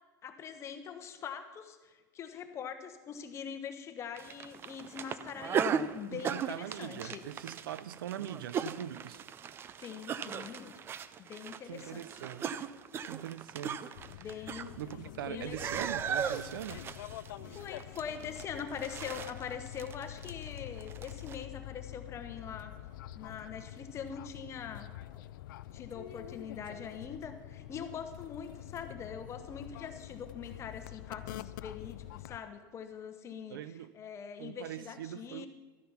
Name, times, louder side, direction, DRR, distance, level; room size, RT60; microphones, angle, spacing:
voice 1, 0.2-7.3 9.8-10.7 11.2-12.2 14.1-15.7 17.5-22.8 23.1-25.2 25.7-33.6 33.9-35.5, left 7 dB, 25° left, 1.1 m, -43 dB
sound 1, 4.2-15.2 15.5-21.4, right 7 dB, 20° right, 0.4 m, -38 dB
voice 2, 6.1-9.2 11.6-12.5 13.1-13.8 14.1-14.3 14.8-16.8 33.5-33.9 34.4-35.5, right 11 dB, 85° right, 0.5 m, -42 dB
sound 2, 13.9-32.4, left 13 dB, 70° left, 0.5 m, -46 dB
13.0 x 9.2 x 5.8 m
supercardioid pair, 140°, 11 cm